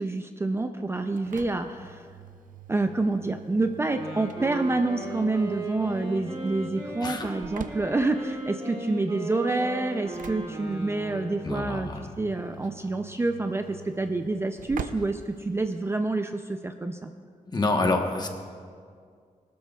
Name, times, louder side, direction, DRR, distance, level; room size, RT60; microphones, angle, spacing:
voice 1, 0.0-2.0 2.7-11.9 12.2-17.1, right 2 dB, 20° right, 6 dB, 0.4 m, -28 dB
Engine / Slam, 0.9-16.1, right 7 dB, 80° right, 0.5 m, -46 dB
Wind instrument woodwind instrument, 3.7-11.6, right 1 dB, 40° right, 2.6 m, -37 dB
voice 2, 7.0-7.3 11.4-12.1 17.5-18.3, left 2 dB, 30° left, 3 dB, 1.1 m, -27 dB
20.5 x 12.5 x 2.3 m, 2.1 s
wide cardioid pair, 140°, 13 cm